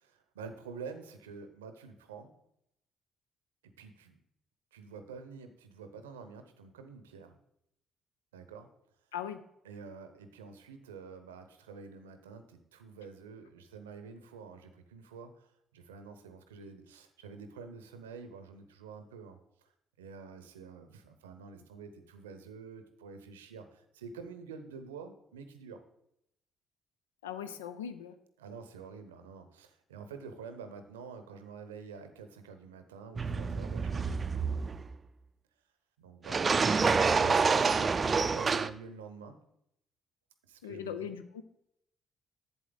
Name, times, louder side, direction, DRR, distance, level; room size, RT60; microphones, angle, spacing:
voice 1, 0.0-2.3 3.6-4.2 4.7-7.4 8.3-8.7 9.6-19.7 20.0-25.8 28.4-34.4 36.0-39.4 40.4-41.1, right 5 dB, 90° right, 9 dB, 0.7 m, -48 dB
voice 2, 27.2-28.2 40.6-41.4, left 8 dB, 90° left, 11 dB, 0.4 m, -39 dB
sound 1, 33.2-34.9 36.3-38.7, right 5 dB, 40° right, 0.4 m, -27 dB
7.9 x 7.5 x 3.8 m, 0.77 s
hypercardioid pair, 45°, 0 cm